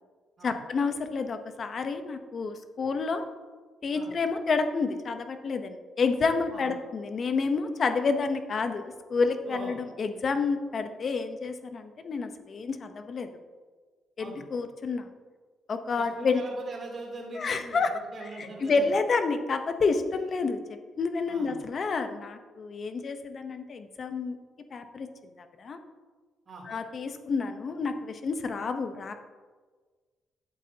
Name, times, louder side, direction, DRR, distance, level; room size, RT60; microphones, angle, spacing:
voice 1, 0.4-3.3 3.8-13.3 14.2-15.1 15.7-16.4 17.3-17.9 18.2-24.4 24.7-25.1 25.4-25.8 26.6-29.1, left 4 dB, 45° left, 8 dB, 0.9 m, -29 dB
voice 2, 15.9-18.9 21.3-21.6 26.5-26.6, right 2 dB, 40° right, -2 dB, 3.1 m, -41 dB
11.5 x 8.1 x 2.8 m, 1.4 s
cardioid pair, 90°, 0 cm